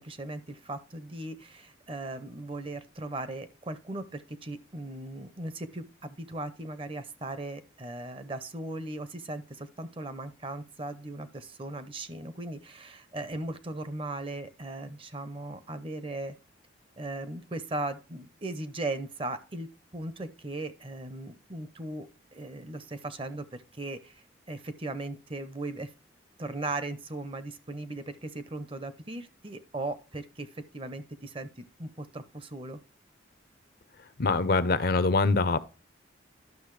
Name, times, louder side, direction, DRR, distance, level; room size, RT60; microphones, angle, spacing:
voice 1, 0.0-16.4 17.0-25.9 26.4-32.8, right 2 dB, 30° right, 0.6 m, -38 dB
voice 2, 34.2-35.6, left 3 dB, 50° left, 0.5 m, -24 dB
11.5 x 6.2 x 3.1 m
head